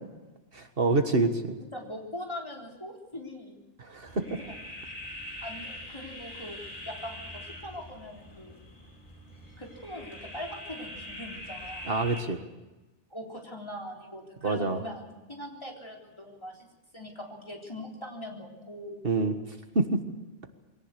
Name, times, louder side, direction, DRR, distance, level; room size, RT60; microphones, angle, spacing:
voice 1, 0.5-1.6 3.8-4.4 11.8-12.4 14.4-14.8 19.0-19.3 19.7-20.0, right 3 dB, 65° right, 7 dB, 1.8 m, -26 dB
voice 2, 1.7-3.6 4.2-4.3 5.4-8.6 9.6-11.9 13.1-16.7 16.9-19.1, left 1 dB, 25° left, -1 dB, 3.9 m, -41 dB
sound 1, 4.1-12.2, left 1 dB, 55° left, 4.2 m, -43 dB
23.0 x 17.5 x 8.2 m, 1.1 s
omnidirectional pair, 1.0 m